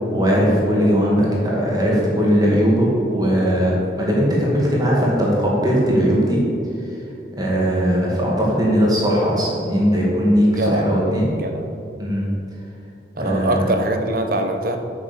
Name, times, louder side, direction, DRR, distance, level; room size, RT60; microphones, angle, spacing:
voice 1, 0.1-6.4 7.3-11.3 12.0-12.3 13.2-13.6, equal, 20° right, -4 dB, 2.2 m, -19 dB
voice 2, 10.5-10.9 11.3-11.7 13.2-14.8, right 1 dB, 50° right, 5 dB, 1.0 m, -23 dB
8.8 x 6.3 x 6.8 m, 2.8 s
head